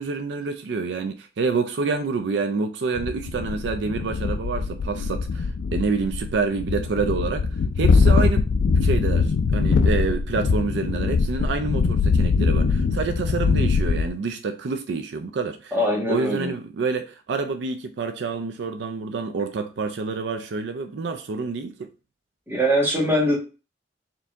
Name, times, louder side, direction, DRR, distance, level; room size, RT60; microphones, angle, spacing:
voice 1, 0.0-7.5 7.8-15.7 16.1-21.9, right 4 dB, 70° right, 0.4 m, -27 dB
sound 1, 3.0-14.1, left 4 dB, 85° left, 0.3 m, -22 dB
voice 2, 15.7-16.5 22.5-23.4, equal, 10° right, 1.5 m, -22 dB
4.3 x 2.7 x 3.5 m
head